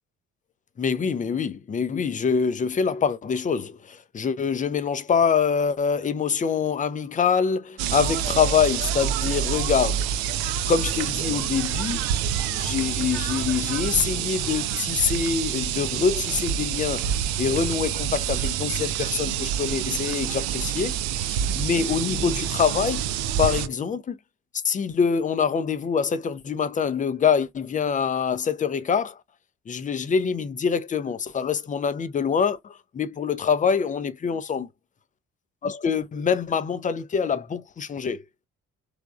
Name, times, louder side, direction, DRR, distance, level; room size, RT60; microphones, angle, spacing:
voice 1, 0.8-10.1 10.7-12.1 12.5-17.1 17.4-21.0 21.2-23.0 23.4-24.2 24.6-29.2 29.7-34.7 35.6-38.2, left 6 dB, 20° left, 0.5 m, -25 dB
sound 1, 7.8-23.7, right 9 dB, 55° right, 0.5 m, -27 dB
3.4 x 3.1 x 2.3 m
figure-of-eight pair, 45°, 41 cm